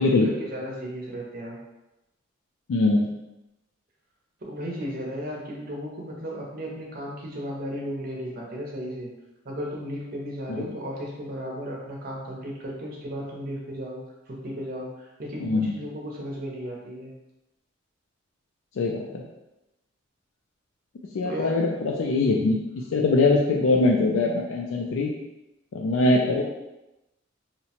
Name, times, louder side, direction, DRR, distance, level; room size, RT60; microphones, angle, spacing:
voice 1, 0.0-1.6 4.4-9.1 9.4-17.1 21.2-21.6, equal, 45° right, -2 dB, 0.6 m, -35 dB
voice 2, 2.7-3.1 10.5-10.7 15.4-15.7 18.8-19.2 21.1-22.6 22.9-25.1 25.7-26.4, left 3 dB, 75° left, -1 dB, 0.3 m, -22 dB
2.7 x 2.1 x 2.8 m, 0.96 s
head